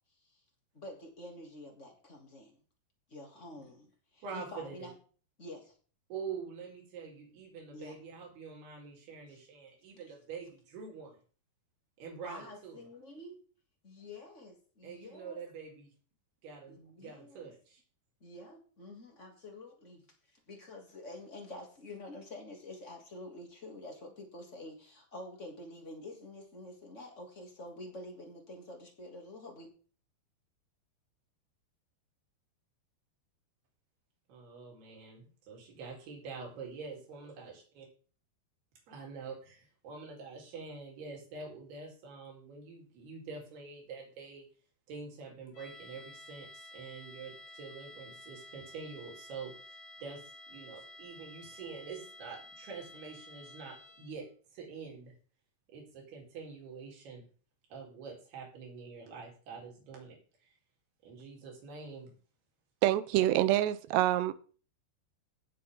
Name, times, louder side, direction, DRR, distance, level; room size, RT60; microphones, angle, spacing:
voice 1, 0.7-2.5 3.1-4.9 5.4-5.7 7.7-7.9 9.3-9.4 12.1-13.4 13.8-15.4 16.7-17.5 18.2-20.0 20.3-29.7, left 1 dB, 20° left, 1 dB, 2.5 m, -48 dB
voice 2, 4.2-4.9 6.1-11.2 12.0-12.8 14.8-15.9 16.4-17.8 34.3-37.9 38.9-44.5 44.9-50.2 50.5-54.3 54.5-55.2 55.7-57.3 57.7-60.2 60.4-60.5 61.0-62.1 63.2-63.3, right 5 dB, 70° right, -1 dB, 5.6 m, -46 dB
sound 1, 45.5-54.3, left 1 dB, 65° left, 6.5 m, -52 dB
voice 3, 62.8-64.3, right 14 dB, 90° right, 14 dB, 2.9 m, -26 dB
17.5 x 7.7 x 3.9 m, 0.40 s
omnidirectional pair, 4.7 m